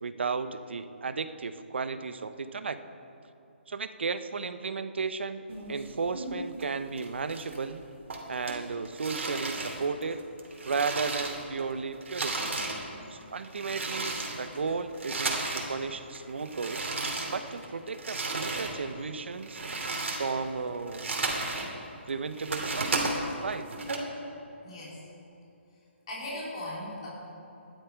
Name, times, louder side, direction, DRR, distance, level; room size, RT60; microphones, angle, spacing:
voice 1, 0.0-2.8 3.7-7.8 8.3-10.2 10.7-12.5 13.1-16.9 17.3-19.6 20.2-21.1 22.1-23.1 23.4-23.6, right 4 dB, 65° right, 11 dB, 0.7 m, -34 dB
sound 1, 5.5-6.7 7.0-7.8 8.1-11.7 11.9-15.7 16.0-18.8 19.2-21.7 22.1-24.0, right 3 dB, 85° right, 2.5 m, -34 dB
voice 2, 24.6-25.0 26.1-27.1, left 1 dB, 30° left, -6 dB, 3.1 m, -38 dB
14.0 x 11.5 x 4.6 m, 2.8 s
hypercardioid pair, 180°, 7 cm